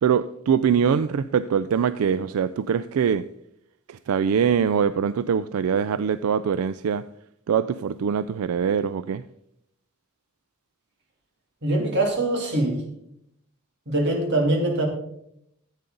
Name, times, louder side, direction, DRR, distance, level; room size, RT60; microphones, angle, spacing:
voice 1, 0.0-3.3 3.9-7.0 7.5-9.2, right 7 dB, 90° right, 0.4 m, -23 dB
voice 2, 11.6-12.8 13.9-14.9, right 1 dB, 55° right, 2.8 m, -23 dB
14.0 x 8.2 x 3.9 m
head